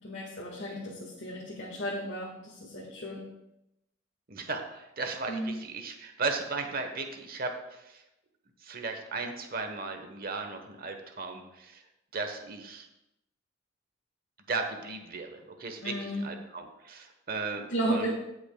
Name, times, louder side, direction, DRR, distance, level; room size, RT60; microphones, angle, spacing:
voice 1, 0.0-3.2 5.3-5.5 15.8-16.3 17.7-18.1, right 1 dB, 65° left, -5 dB, 1.7 m, -34 dB
voice 2, 4.3-8.0 8.6-11.8 12.1-12.9 14.5-18.1, right 3 dB, 50° right, 5 dB, 1.1 m, -36 dB
18.0 x 6.1 x 2.3 m, 0.90 s
head